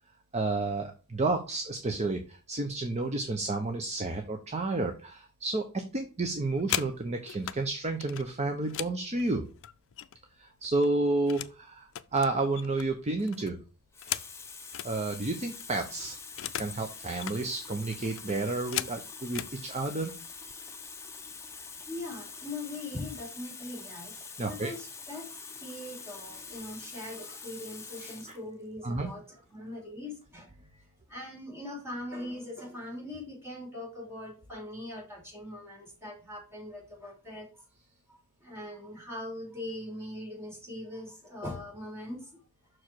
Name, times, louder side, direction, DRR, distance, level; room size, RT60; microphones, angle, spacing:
voice 1, 0.3-9.4 10.4-13.6 14.8-16.2 16.6-20.1 24.4-24.7 28.8-29.1, right 2 dB, 30° right, 5 dB, 0.7 m, -31 dB
sound 1, 6.3-7.6 8.0-10.3 10.6-11.6 11.9-14.9 15.3-15.4 15.6-16.8 17.1-17.4 17.9-19.6 20.4-20.5 20.9-21.2 21.5-22.0, left 12 dB, 60° left, 0.4 m, -38 dB
Water tap faucet, 13.1-13.4 13.9-28.4 29.3-29.5, left 5 dB, 10° left, 0.7 m, -45 dB
voice 2, 21.9-24.2 24.5-25.3 25.6-37.5 38.1-42.4, left 1 dB, 10° right, -2 dB, 3.0 m, -41 dB
6.2 x 4.8 x 4.4 m, 0.36 s
head